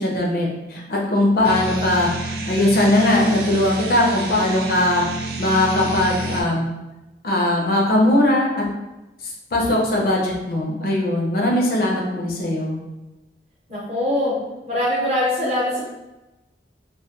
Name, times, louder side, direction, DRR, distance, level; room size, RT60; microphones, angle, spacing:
voice 1, 0.0-2.1 2.5-5.0 5.4-6.7 7.2-8.6 9.5-12.8, left 1 dB, 55° left, -2 dB, 0.5 m, -19 dB
sound 1, 1.4-6.4, right 2 dB, 60° right, 0.3 m, -30 dB
voice 2, 13.7-14.3 14.7-15.8, left 1 dB, 40° right, -6 dB, 0.8 m, -22 dB
2.2 x 2.2 x 2.7 m, 1.0 s
head